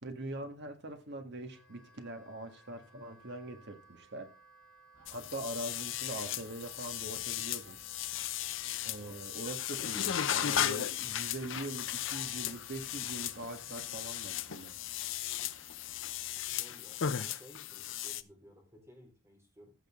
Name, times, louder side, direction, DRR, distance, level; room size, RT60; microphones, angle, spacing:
voice 1, 0.0-4.3 5.1-7.8 8.8-14.8, right 1 dB, 55° right, 1.8 m, -43 dB
Wind instrument woodwind instrument, 1.4-14.6, right 3 dB, 5° left, 4.9 m, -61 dB
sound 1, 4.9-16.6, equal, 85° right, 3.6 m, -62 dB
sound 2, 5.1-18.2, left 10 dB, 65° left, 0.6 m, -36 dB
voice 2, 8.8-9.2 16.5-19.7, equal, 15° right, 4.2 m, -57 dB
15.0 x 6.5 x 3.7 m
head